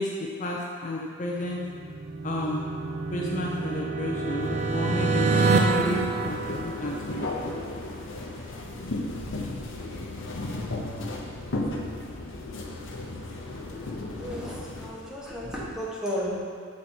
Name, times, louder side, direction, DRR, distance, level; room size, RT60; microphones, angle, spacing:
voice 1, 0.0-1.6 2.2-2.7 3.1-7.5, left 1 dB, 35° left, -2 dB, 0.5 m, -32 dB
sound 1, 1.5-7.3, right 3 dB, 35° right, 0.4 m, -27 dB
sound 2, 4.4-14.9, left 2 dB, 65° left, 0.8 m, -35 dB
voice 2, 13.9-16.4, equal, 5° right, -6 dB, 1.0 m, -34 dB
7.6 x 4.2 x 4.3 m, 2.1 s
head